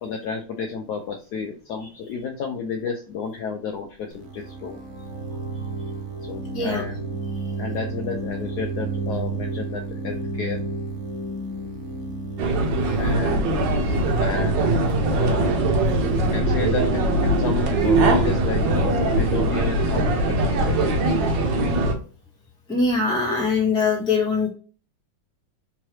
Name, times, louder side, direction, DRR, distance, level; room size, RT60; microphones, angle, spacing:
voice 1, 0.0-4.8 6.2-7.2 7.6-10.6 13.0-13.6 14.2-15.5 16.2-21.2, left 5 dB, 75° left, 3 dB, 0.9 m, -32 dB
sound 1, 4.1-21.7, right 3 dB, 85° right, 0.7 m, -33 dB
sound 2, 12.4-21.9, right 2 dB, 70° right, 1.3 m, -21 dB
voice 2, 22.7-24.5, left 4 dB, 5° left, -3 dB, 0.4 m, -22 dB
3.7 x 3.1 x 2.9 m, 0.39 s
omnidirectional pair, 2.2 m